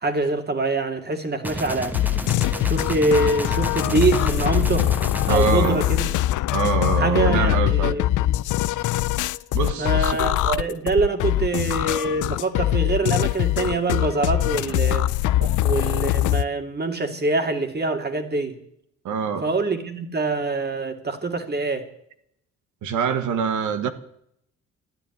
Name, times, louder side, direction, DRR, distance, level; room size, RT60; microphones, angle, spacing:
voice 1, 0.0-2.0 2.6-5.0 5.3-6.2 7.0-8.3 9.8-15.1 15.6-18.6 19.4-21.8, right 3 dB, 35° right, 2.6 m, -24 dB
Gunshot gunfire, 1.4-6.7, equal, 5° right, 1.4 m, -32 dB
sound 1, 1.9-16.4, left 14 dB, 80° left, 0.6 m, -22 dB
voice 2, 5.3-5.9 6.5-8.0 9.5-10.2 10.4-10.6 15.4-15.5 19.0-19.5 22.8-23.9, right 6 dB, 75° right, 1.6 m, -24 dB
14.5 x 10.0 x 9.5 m
cardioid pair, 90°, 30 cm